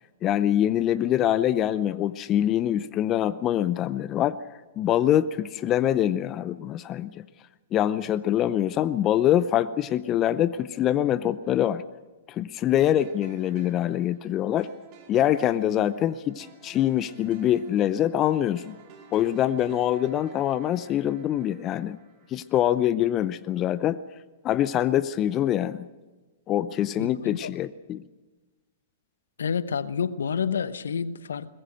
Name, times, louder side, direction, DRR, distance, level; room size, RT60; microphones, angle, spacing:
voice 1, 0.2-4.4 4.8-7.2 7.7-11.8 12.3-14.7 15.1-18.8 19.1-22.0 22.3-24.0 24.4-25.9 26.5-28.0, left 11 dB, 30° left, 16 dB, 0.6 m, -24 dB
sound 1, 12.8-23.0, right 6 dB, 40° right, 4.6 m, -53 dB
voice 2, 27.0-27.5 29.4-31.5, left 6 dB, 75° left, 15 dB, 0.9 m, -29 dB
22.0 x 20.5 x 6.6 m, 1.2 s
hypercardioid pair, 110°, 0 cm